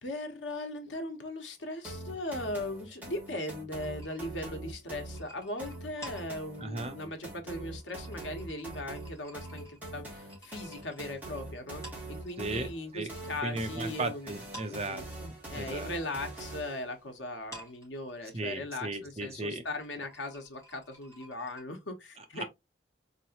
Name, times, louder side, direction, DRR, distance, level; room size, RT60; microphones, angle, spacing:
voice 1, 0.0-11.8 12.1-14.3 14.7-15.0 15.5-22.4, left 1 dB, 90° left, 1.1 m, -39 dB
sound 1, 1.8-16.9, right 2 dB, 10° right, 1.6 m, -43 dB
sound 2, 3.8-12.7 13.0-14.1 14.4-21.6, right 1 dB, 15° left, 2.0 m, -53 dB
voice 2, 6.6-7.0 12.4-12.7 12.9-13.1 13.4-15.9 18.3-19.6 22.2-22.4, right 2 dB, 35° right, 0.7 m, -36 dB
3.9 x 3.0 x 2.9 m
head